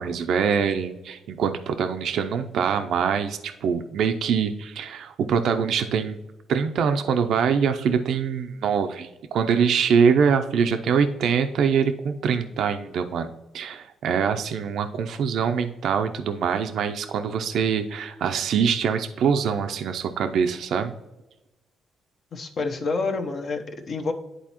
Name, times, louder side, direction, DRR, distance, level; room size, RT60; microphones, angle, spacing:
voice 1, 0.0-6.2 6.5-20.9, right 6 dB, 70° right, 7 dB, 0.4 m, -24 dB
voice 2, 22.3-24.1, left 3 dB, 50° left, 5 dB, 0.8 m, -28 dB
10.5 x 4.1 x 2.9 m, 1.0 s
cardioid pair, 90°, 0 cm